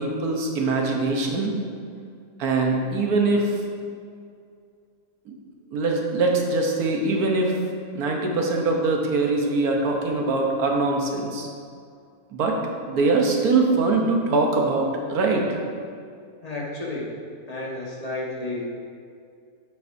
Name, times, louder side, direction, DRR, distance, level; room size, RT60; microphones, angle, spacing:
voice 1, 0.0-1.5 2.4-3.5 5.3-5.4 5.7-7.5 7.9-11.5 12.3-12.6 12.9-15.6, right 3 dB, 90° right, 1 dB, 1.5 m, -22 dB
voice 2, 16.4-17.1 17.5-18.6, left 2 dB, 25° left, -4 dB, 1.4 m, -31 dB
9.0 x 7.4 x 2.7 m, 2.3 s
omnidirectional pair, 1.5 m